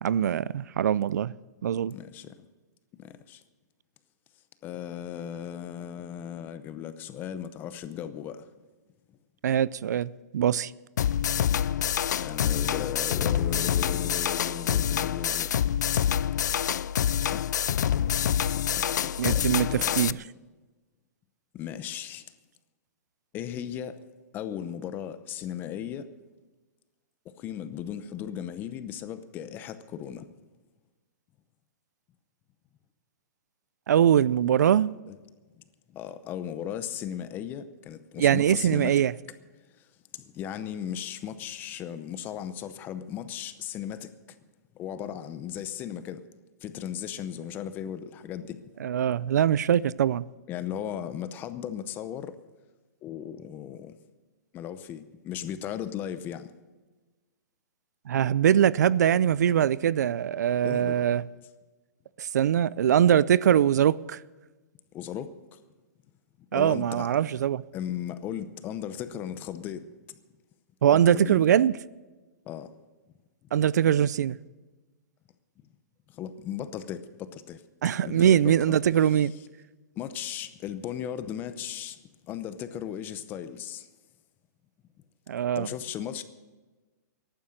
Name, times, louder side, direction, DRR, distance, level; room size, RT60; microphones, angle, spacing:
voice 1, 0.0-1.3 1.6-1.9 9.4-10.7 19.2-20.1 33.9-34.9 38.2-39.1 48.8-50.2 58.1-61.2 62.2-64.2 66.5-67.6 70.8-71.7 73.5-74.4 77.8-79.3 85.3-85.7, right 9 dB, 75° right, 0.4 m, -22 dB
voice 2, 1.9-2.3 2.9-3.4 4.6-8.5 12.2-15.5 15.9-16.1 17.2-17.7 18.5-20.2 21.5-22.2 23.3-24.0 24.3-26.1 27.3-30.3 35.1-35.2 35.9-38.9 39.8-39.9 40.1-44.4 44.7-46.2 46.6-48.9 50.5-52.4 53.0-54.0 54.5-56.5 60.6-61.0 64.9-65.6 66.5-67.1 67.7-70.2 70.9-71.4 72.5-72.7 76.1-77.6 78.1-78.8 80.0-83.9 85.6-86.2, left 9 dB, 20° left, 0.7 m, -37 dB
sound 1, 11.0-20.1, left 9 dB, 85° left, 0.4 m, -26 dB
14.5 x 11.5 x 6.5 m
hypercardioid pair, 155°, 9 cm